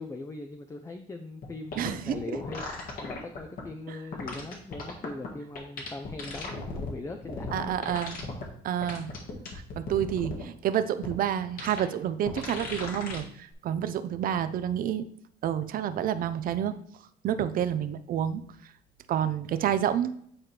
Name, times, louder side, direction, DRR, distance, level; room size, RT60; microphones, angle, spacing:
voice 1, 0.0-7.8 9.3-9.5 17.4-17.5, left 2 dB, 15° left, 6 dB, 0.5 m, -40 dB
sound 1, 1.4-1.5 1.7-3.6 4.1-5.3 5.6-6.9 7.2-8.5 8.8-10.4 11.0-11.1 11.6-11.8 12.3-13.2 13.5-13.6, left 3 dB, 60° left, 1.8 m, -36 dB
voice 2, 1.8-2.2 3.9-4.0 7.5-8.2 8.6-9.1 9.8-15.1 15.4-16.8 17.2-18.4 19.1-20.2, right 10 dB, 55° right, 12 dB, 0.6 m, -29 dB
8.7 x 4.4 x 3.3 m, 0.66 s
cardioid pair, 110°, 17 cm